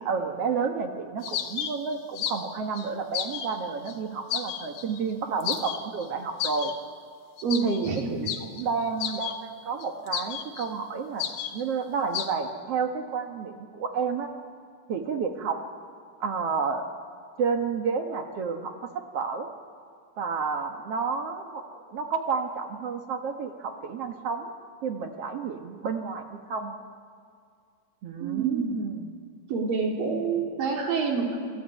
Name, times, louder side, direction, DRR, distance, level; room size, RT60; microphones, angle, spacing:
voice 1, 0.0-6.7 7.6-14.3 14.9-15.6 16.2-16.9 17.4-19.5 20.2-21.6 21.9-24.5 24.8-26.8 28.0-29.2, right 5 dB, 55° right, 5 dB, 1.9 m, -30 dB
sound 1, 1.2-2.5 2.8-3.6 3.9-4.0 4.3-5.0 5.4-6.0 6.4-6.7 7.4-9.4 9.8-10.7 11.2-11.6 12.1-12.3, left 9 dB, 75° left, 2.9 m, -32 dB
voice 2, 7.4-8.1 28.2-28.8 29.5-31.4, right 5 dB, 70° right, 0 dB, 5.1 m, -27 dB
28.0 x 17.0 x 9.2 m, 2.2 s
omnidirectional pair, 4.1 m